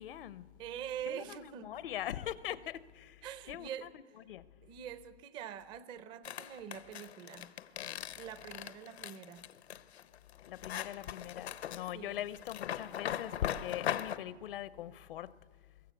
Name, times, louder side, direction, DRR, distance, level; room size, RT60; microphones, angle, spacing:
voice 1, 0.0-0.5 1.1-4.4 10.5-15.3, left 12 dB, 60° left, 0.7 m, -42 dB
voice 2, 0.6-1.7 3.2-3.9 4.6-7.5 8.2-9.4 11.9-12.2, right 9 dB, 15° right, 0.5 m, -44 dB
sound 1, 6.2-14.2, left 10 dB, 80° left, 1.0 m, -40 dB
22.0 x 17.0 x 8.2 m
hypercardioid pair, 155°, 32 cm